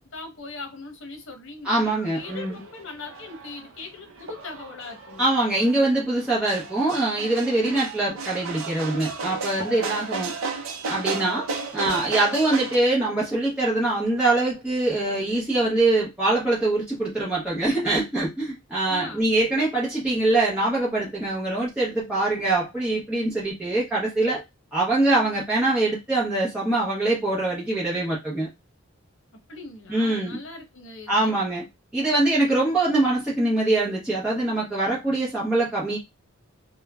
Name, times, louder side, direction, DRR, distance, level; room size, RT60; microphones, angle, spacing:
voice 1, 0.1-5.3 18.9-19.3 29.5-31.4, left 3 dB, 65° left, 0.8 m, -40 dB
voice 2, 1.6-2.6 5.2-10.3 10.9-11.4 11.7-24.4 24.7-28.5 29.9-30.4 31.1-31.6 31.9-36.0, right 2 dB, 5° right, 0.7 m, -23 dB
sound 1, 2.2-12.8, right 4 dB, 70° right, 0.5 m, -34 dB
3.0 x 2.1 x 2.2 m
head